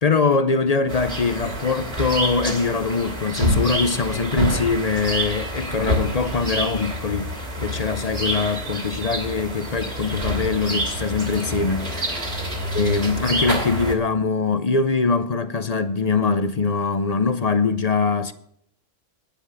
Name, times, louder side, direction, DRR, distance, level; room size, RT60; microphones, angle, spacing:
voice 1, 0.0-12.2 12.7-18.3, left 4 dB, 40° left, 0.6 m, -22 dB
sound 1, 0.9-13.9, equal, 50° right, 3.2 m, -27 dB
11.5 x 9.8 x 6.4 m
omnidirectional pair, 1.3 m